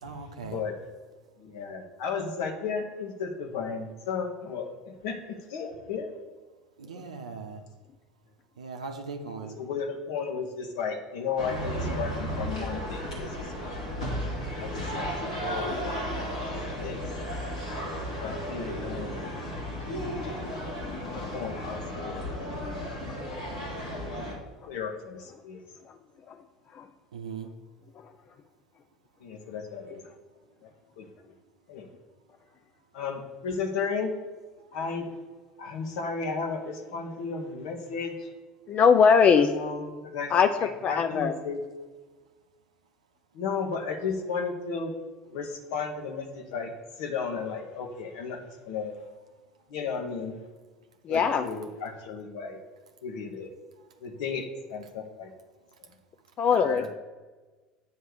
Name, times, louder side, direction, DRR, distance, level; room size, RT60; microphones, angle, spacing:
voice 1, 0.0-0.6 6.8-7.6 8.6-9.6 27.1-27.5, right 5 dB, 75° right, 5 dB, 0.7 m, -39 dB
voice 2, 1.4-6.2 9.4-13.9 14.5-15.1 15.4-16.2 16.8-17.0 18.2-19.2 21.1-22.2 22.4-22.8 23.3-23.5 24.7-25.6 29.2-30.0 30.6-30.7 31.0-31.1 31.7-31.9 32.9-34.1 34.7-35.1 35.6-38.3 39.5-40.3 40.6-41.6 43.3-44.9 45.3-46.7 47.0-48.9 49.7-50.4 51.1-52.6 53.0-53.5 54.0-55.3 56.6-56.9, left 5 dB, 65° left, 3 dB, 1.1 m, -34 dB
sound 1, 11.4-24.3, equal, 85° left, 1.6 m, -34 dB
voice 3, 38.7-39.5 40.3-41.3 51.0-51.5 56.4-56.9, left 6 dB, 40° left, 7 dB, 0.4 m, -22 dB
8.6 x 3.3 x 6.5 m, 1.3 s
figure-of-eight pair, 65°, 3 cm